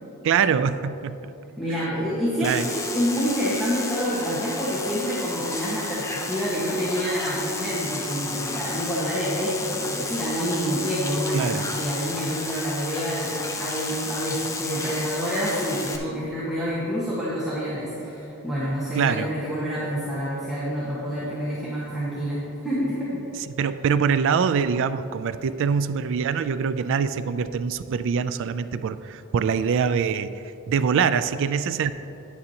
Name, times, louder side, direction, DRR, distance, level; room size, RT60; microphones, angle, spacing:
voice 1, 0.2-1.3 1.7-1.8 2.4-2.7 11.3-11.6 18.9-19.3 23.4-31.9, right 6 dB, 55° right, 13 dB, 0.3 m, -24 dB
voice 2, 1.6-23.2, equal, ahead, -10 dB, 1.3 m, -27 dB
sound 1, 2.4-16.0, left 3 dB, 15° left, 0.6 m, -32 dB
9.6 x 9.4 x 2.9 m, 2.9 s
head